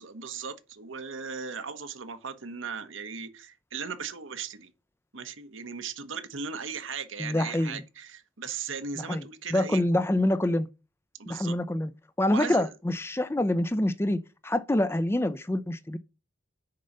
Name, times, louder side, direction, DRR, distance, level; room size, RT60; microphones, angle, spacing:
voice 1, 0.0-4.7 5.1-9.8 11.2-11.6 12.3-12.7, right 5 dB, 85° right, 1.2 m, -37 dB
voice 2, 7.2-7.8 9.0-10.7 11.3-11.9 12.2-16.0, left 1 dB, 15° left, 0.4 m, -26 dB
6.6 x 5.4 x 6.6 m
head